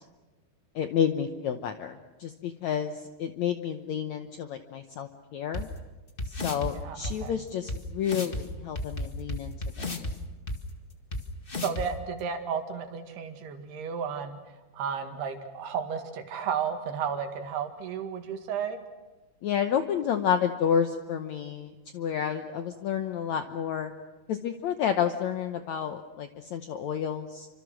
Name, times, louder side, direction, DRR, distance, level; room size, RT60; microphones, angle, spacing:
voice 1, 0.7-5.7 6.2-10.0 19.4-23.9 24.3-27.5, left 8 dB, 75° left, 7 dB, 1.7 m, -30 dB
sound 1, 5.5-5.6 6.2-6.7 7.0-7.1 7.7-7.8 8.0-8.4 8.7-10.1 10.5-10.6 11.1-11.2 11.5-11.8, left 1 dB, 55° left, 0.6 m, -32 dB
voice 2, 6.6-7.4 11.5-14.4 14.7-18.8, right 7 dB, 85° right, 6 dB, 4.0 m, -33 dB
29.0 x 25.5 x 6.3 m, 1.2 s
omnidirectional pair, 4.5 m